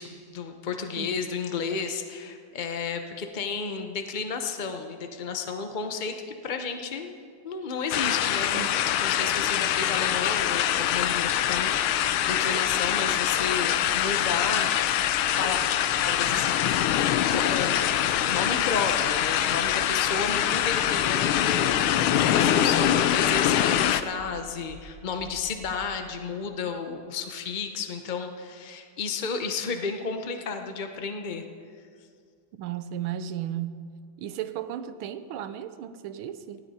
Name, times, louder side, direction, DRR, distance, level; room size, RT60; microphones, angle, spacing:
voice 1, 0.0-14.7 15.4-15.6 16.0-31.4, left 5 dB, 60° left, 5 dB, 0.5 m, -32 dB
sound 1, 7.9-24.0, left 11 dB, 85° left, 1.5 m, -24 dB
sound 2, 11.0-11.1 11.5-11.7 12.0-12.3 12.6-12.9 13.2-13.5 13.8-14.0 14.4-14.6 15.0-15.2 15.5-15.8 16.1-16.4 16.7-17.0 17.3-17.5 17.9-18.1 18.5-18.7 19.0-19.3 19.6-19.8 20.2-20.4 20.7-20.9 21.2-21.4 21.7-21.9 22.2-22.4 22.7-22.9 23.2-23.4 23.7-23.9 24.2-24.4 24.7-24.9 25.2-25.8, left 1 dB, 35° left, 3.8 m, -48 dB
voice 2, 32.6-33.8 34.2-36.6, right 10 dB, 90° right, 11 dB, 1.6 m, -34 dB
19.0 x 16.0 x 4.2 m, 2.2 s
omnidirectional pair, 2.2 m